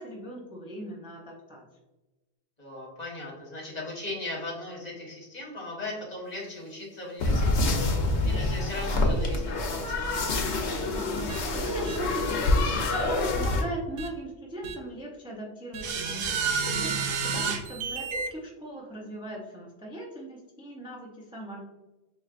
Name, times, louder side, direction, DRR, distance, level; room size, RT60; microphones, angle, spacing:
voice 1, 0.0-1.6 11.5-21.6, right 1 dB, 10° right, -2 dB, 0.3 m, -38 dB
voice 2, 2.6-10.4, left 2 dB, 40° left, -3 dB, 1.3 m, -38 dB
sound 1, 7.2-13.6, left 2 dB, 80° left, 0.9 m, -26 dB
sound 2, 11.3-11.4 11.9-12.0 12.9-13.0 14.0-14.1 14.6-14.7 15.7-18.3, right 5 dB, 80° right, 0.9 m, -30 dB
4.4 x 3.0 x 2.4 m, 1.1 s
omnidirectional pair, 1.1 m